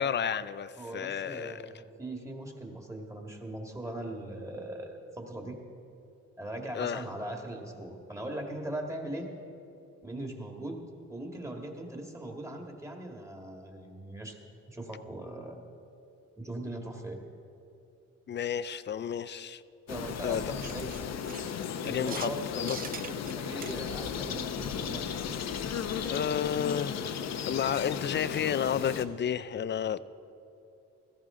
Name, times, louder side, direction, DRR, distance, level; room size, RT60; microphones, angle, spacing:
voice 1, 0.0-1.6 6.7-7.0 18.3-19.6 20.2-20.4 21.9-22.8 26.0-27.2 27.5-30.0, left 8 dB, 35° left, 16 dB, 0.4 m, -31 dB
voice 2, 0.8-5.6 6.4-9.3 10.0-10.8 11.1-14.4 14.7-15.6 16.4-17.2 19.9-20.9 21.8-25.4, right 1 dB, 10° right, 2 dB, 1.9 m, -40 dB
Animal Sounds Morphagene Reel, 19.9-29.0, left 7 dB, 60° left, 0.8 m, -35 dB
sound 1, 20.6-22.4 22.7-24.0 26.0-26.1 26.4-26.5 26.8-26.9 27.3-27.4, right 8 dB, 30° right, 0.4 m, -44 dB
16.0 x 14.0 x 3.8 m, 2.7 s
cardioid pair, 90°, 30 cm